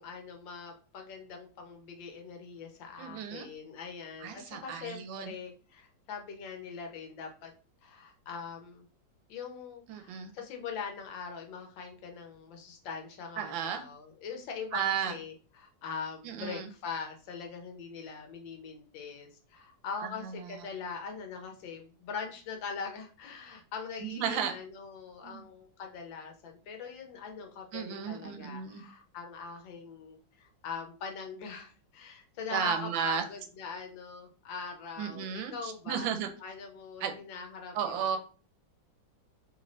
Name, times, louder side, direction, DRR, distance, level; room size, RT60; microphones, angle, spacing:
voice 1, 0.0-7.5 7.8-8.8 9.3-36.1 36.4-38.2, left 5 dB, 80° left, 3 dB, 1.5 m, -42 dB
voice 2, 3.0-3.5 4.2-5.3 9.9-10.3 13.4-13.8 14.7-15.1 16.2-16.7 20.0-20.4 24.0-24.5 25.2-25.5 27.7-28.8 32.5-33.2 35.0-36.3 37.0-37.2 37.7-38.2, right 8 dB, 90° right, 6 dB, 1.3 m, -34 dB
3.5 x 2.6 x 3.1 m, 0.38 s
omnidirectional pair, 2.1 m